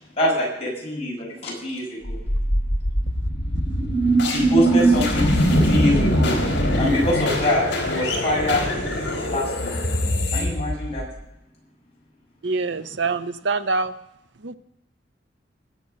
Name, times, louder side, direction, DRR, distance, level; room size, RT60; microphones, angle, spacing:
voice 1, 0.2-2.2 4.3-6.4 6.8-8.6 9.3-9.7 10.3-11.1, left 1 dB, 35° left, -3 dB, 6.5 m, -24 dB
sound 1, 2.1-11.2, equal, 70° left, 3.8 m, -21 dB
voice 2, 12.4-13.9 14.4-14.6, right 3 dB, 90° right, 11 dB, 0.8 m, -25 dB
21.0 x 7.2 x 6.5 m, 0.83 s
head